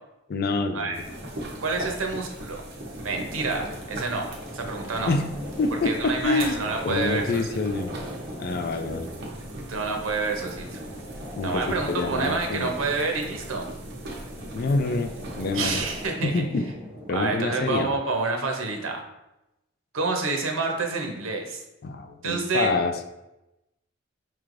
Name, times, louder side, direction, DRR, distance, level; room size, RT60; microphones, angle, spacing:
voice 1, 0.3-0.9 5.1-5.3 5.6-6.6 6.8-7.9 8.4-9.1 11.4-12.7 14.5-15.1 15.4-15.7 16.2-16.7 17.1-17.9 21.8-23.0, left 3 dB, 50° left, 7 dB, 0.4 m, -26 dB
sound 1, 0.9-16.1, right 1 dB, 55° right, 0.8 m, -39 dB
sound 2, 1.0-18.0, equal, 25° right, 0.8 m, -41 dB
voice 2, 1.6-2.6 3.0-4.3 4.5-5.1 5.8-7.5 9.7-10.8 11.4-13.7 15.5-16.4 17.1-19.0 19.9-21.6 22.2-22.7, right 3 dB, 85° right, 3 dB, 0.7 m, -28 dB
4.6 x 3.2 x 2.5 m, 0.92 s
head